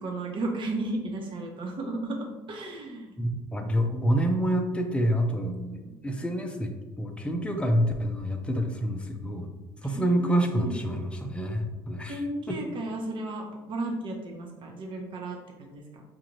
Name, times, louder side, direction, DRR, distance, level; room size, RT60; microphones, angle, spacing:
voice 1, 0.0-3.1 5.3-5.9 9.8-11.1 12.1-16.0, right 2 dB, 50° right, 1 dB, 0.9 m, -35 dB
voice 2, 3.2-5.5 6.0-9.5 9.8-12.1, equal, 10° left, 4 dB, 0.6 m, -27 dB
5.2 x 2.5 x 3.0 m, 1.1 s
supercardioid pair, 75°, 11 cm